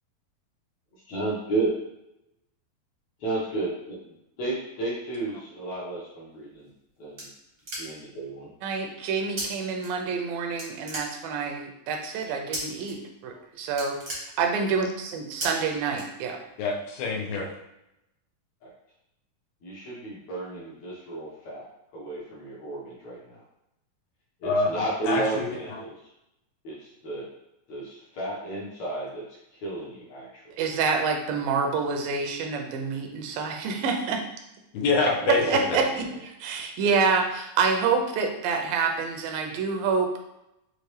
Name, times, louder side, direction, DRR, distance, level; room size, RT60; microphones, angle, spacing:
voice 1, 1.1-1.7 3.2-4.0 4.4-6.7 7.0-7.3 7.8-8.5 18.6-18.7 19.6-21.6 21.9-23.4 24.4-26.0 26.6-27.3 27.7-29.2 29.6-30.4 35.2-35.9, right 2 dB, 65° left, -5 dB, 2.0 m, -32 dB
sound 1, 6.5-8.2 9.4-9.5 9.8-10.3 10.6-11.5 12.5-12.9 13.3-13.4 13.7-14.8 15.4-15.5 15.9-16.6, right 1 dB, 60° right, 0.8 m, -36 dB
voice 2, 8.6-16.4 30.6-34.2 35.3-36.1 36.4-40.2, right 5 dB, 85° right, 3 dB, 2.3 m, -27 dB
voice 3, 16.6-17.5 24.4-24.7 25.0-25.8 34.7-35.4 35.7-35.8, left 3 dB, 90° left, 1 dB, 2.5 m, -26 dB
6.5 x 2.5 x 3.2 m, 0.86 s
omnidirectional pair, 4.0 m